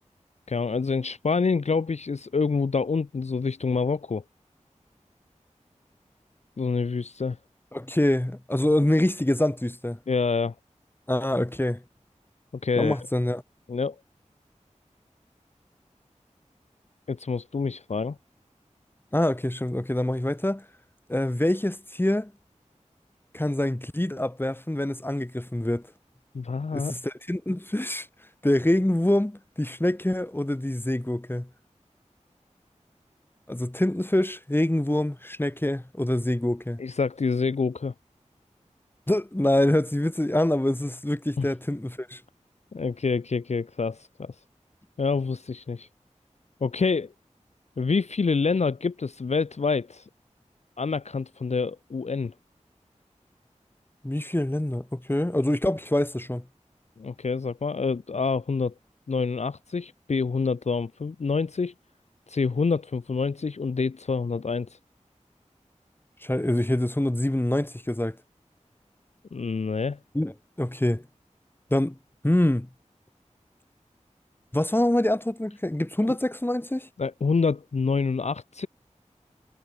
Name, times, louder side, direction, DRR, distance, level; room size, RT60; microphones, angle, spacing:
voice 1, 0.5-4.2 6.6-7.4 10.1-10.5 12.6-13.0 13.7-14.0 17.1-18.2 26.3-26.9 36.8-37.9 41.4-41.5 42.7-44.3 45.0-45.9 46.6-47.1 47.8-50.1 50.8-52.3 57.0-58.7 59.1-61.7 62.3-64.8 69.3-70.0 77.0-78.7, left 4 dB, 60° left, 0.6 m, -27 dB
voice 2, 7.7-10.0 11.1-11.8 12.8-13.4 19.1-20.6 21.1-22.3 23.3-25.8 26.7-28.1 28.4-31.5 33.5-36.8 39.1-42.2 54.0-56.4 66.2-68.2 70.1-71.0 71.7-72.0 72.2-72.7 74.5-76.9, left 1 dB, 15° left, 1.9 m, -25 dB
wide cardioid pair, 50°, 13 cm